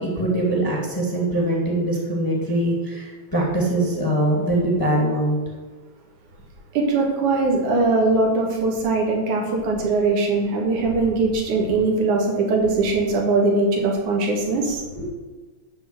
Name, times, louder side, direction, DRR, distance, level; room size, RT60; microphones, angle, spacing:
voice 1, 0.0-5.4, right 1 dB, 10° left, -2 dB, 1.7 m, -22 dB
voice 2, 6.7-14.8, right 3 dB, 85° right, 0 dB, 3.2 m, -21 dB
12.0 x 4.2 x 7.8 m, 1.3 s
omnidirectional pair, 3.4 m